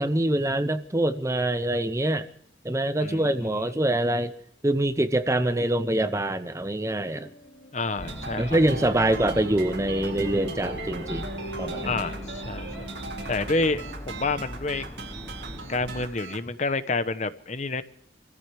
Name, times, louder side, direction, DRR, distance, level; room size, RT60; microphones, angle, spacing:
voice 1, 0.0-2.3 2.6-4.3 4.6-7.3 8.4-11.3 11.6-11.9, right 1 dB, 15° right, 11 dB, 0.6 m, -25 dB
sound 1, 6.8-14.1, equal, 65° left, 3.9 m, -44 dB
voice 2, 7.7-8.6 11.8-12.9 13.3-14.9 15.7-17.8, left 3 dB, 40° left, 12 dB, 0.9 m, -29 dB
sound 2, 8.0-16.1, left 1 dB, 15° left, 0.8 m, -40 dB
sound 3, 8.0-16.4, right 3 dB, 65° right, 2.2 m, -38 dB
26.0 x 15.0 x 3.4 m, 0.65 s
head